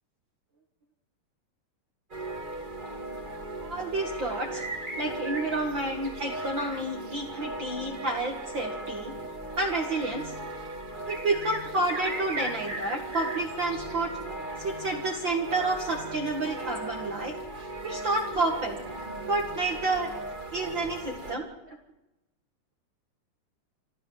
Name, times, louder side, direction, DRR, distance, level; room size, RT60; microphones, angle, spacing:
sound 1, 2.1-21.3, right 2 dB, 15° right, 1.9 m, -37 dB
voice 1, 3.6-4.6 5.0-9.1 9.6-10.3 11.1-14.2 14.6-17.3 17.8-18.8 19.3-20.1 20.5-21.8, right 2 dB, 40° right, 2 dB, 2.1 m, -30 dB
26.5 x 14.0 x 7.5 m, 0.94 s
omnidirectional pair, 3.8 m